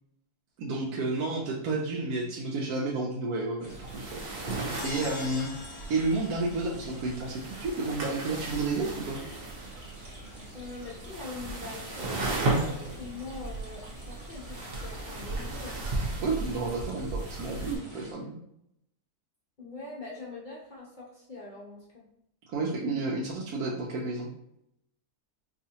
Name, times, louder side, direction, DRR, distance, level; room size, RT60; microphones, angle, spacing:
voice 1, 0.6-4.2 4.5-9.2 16.2-18.4 22.5-24.3, right 3 dB, 75° right, -3 dB, 1.1 m, -31 dB
sound 1, 3.6-18.1, equal, 20° right, 1.1 m, -50 dB
sound 2, 3.7-17.7, right 2 dB, 50° right, 0.8 m, -36 dB
sound 3, 4.8-8.1, left 4 dB, 70° left, 1.0 m, -46 dB
voice 2, 10.5-15.8 19.6-22.0, left 3 dB, 45° left, -4 dB, 0.7 m, -43 dB
4.5 x 2.4 x 2.8 m, 0.76 s
omnidirectional pair, 1.6 m